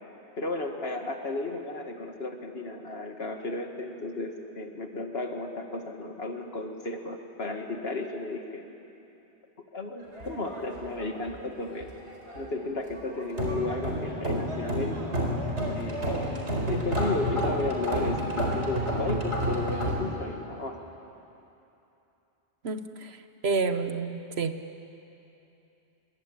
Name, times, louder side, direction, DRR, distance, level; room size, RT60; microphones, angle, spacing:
voice 1, 0.4-8.6 9.7-11.9 12.3-15.0 15.7-20.8, left 2 dB, 60° left, 4 dB, 2.3 m, -34 dB
sound 1, 10.1-11.5 11.7-12.5 12.9-20.0, equal, 90° right, 4.6 m, -30 dB
voice 2, 22.6-24.6, right 4 dB, 65° right, 9 dB, 1.4 m, -30 dB
26.5 x 22.0 x 8.8 m, 2.9 s
omnidirectional pair, 1.1 m